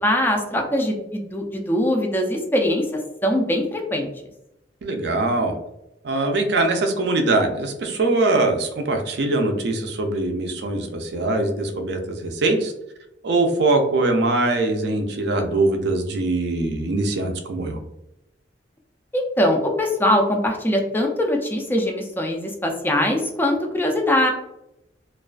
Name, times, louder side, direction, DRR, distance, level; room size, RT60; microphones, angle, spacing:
voice 1, 0.0-4.1 19.1-24.3, left 1 dB, 10° left, 2 dB, 0.3 m, -22 dB
voice 2, 4.8-5.6 6.0-12.7 13.2-17.8, right 2 dB, 60° right, 5 dB, 0.4 m, -22 dB
2.3 x 2.3 x 2.3 m, 0.86 s
head